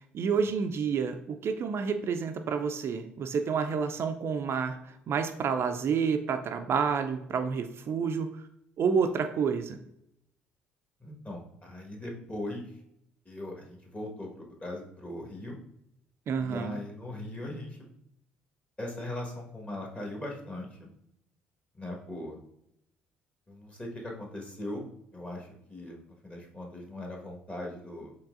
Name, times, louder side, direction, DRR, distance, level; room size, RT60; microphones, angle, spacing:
voice 1, 0.1-8.3 8.8-9.8 16.3-16.8, right 6 dB, 45° right, 7 dB, 0.3 m, -29 dB
voice 2, 11.0-12.7 13.2-15.6 16.4-17.9 18.8-20.9 21.7-22.4 23.5-24.8 25.1-28.1, left 1 dB, 20° left, 0 dB, 1.3 m, -39 dB
4.5 x 3.2 x 2.5 m, 0.77 s
hypercardioid pair, 55°, 6 cm